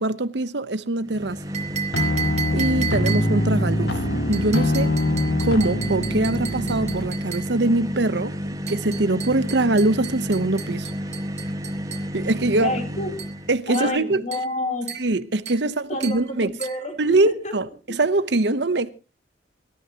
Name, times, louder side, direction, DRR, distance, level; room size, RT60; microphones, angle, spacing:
voice 1, 0.0-1.4 2.5-3.9 4.3-5.0 5.3-8.4 8.7-10.9 12.1-12.8 13.5-14.2 14.9-16.5 17.0-18.9, right 2 dB, 65° right, 1.0 m, -23 dB
sound 1, 1.0-13.6, equal, 20° right, 1.7 m, -31 dB
sound 2, 1.5-3.5 4.3-7.6 8.7-12.1 13.2-13.4 13.7-14.0 14.3-14.6 14.9-15.1 15.5-15.7 16.0-16.3 16.6-16.9, right 8 dB, 40° right, 2.3 m, -34 dB
sound 3, 1.9-7.1, left 1 dB, 65° left, 1.6 m, -24 dB
voice 2, 12.6-13.1 13.7-14.9 15.6-17.6, left 2 dB, 40° left, 3.6 m, -29 dB
25.0 x 13.5 x 3.0 m
head